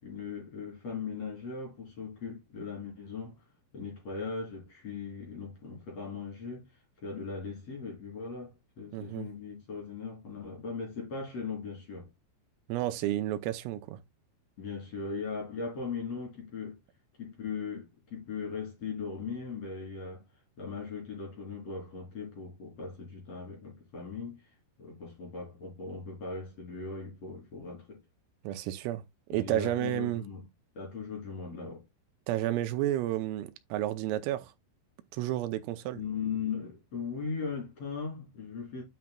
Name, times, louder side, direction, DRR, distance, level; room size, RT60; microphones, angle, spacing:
voice 1, 0.0-3.5 3.7-6.7 7.0-12.1 14.6-16.8 17.2-20.2 20.6-24.5 24.8-28.0 29.3-30.4 30.7-31.8 35.9-38.8, left 5 dB, 35° left, 3.8 m, -39 dB
voice 2, 8.9-9.3 12.7-14.0 28.4-29.0 29.3-30.2 32.3-34.5 35.1-36.0, right 14 dB, 90° right, 3.3 m, -31 dB
9.5 x 6.0 x 2.3 m
omnidirectional pair, 5.9 m